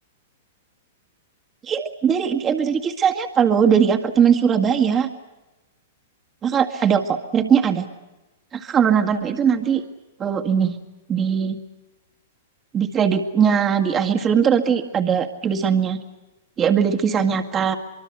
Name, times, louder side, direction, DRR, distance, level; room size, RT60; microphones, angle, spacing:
voice 1, 1.7-5.1 6.4-7.9 8.5-9.8 10.2-10.8 11.1-11.6 12.7-16.0 16.6-17.8, right 7 dB, 25° right, 4 dB, 2.0 m, -20 dB
24.5 x 23.5 x 8.1 m, 1.1 s
hypercardioid pair, 115°, 0 cm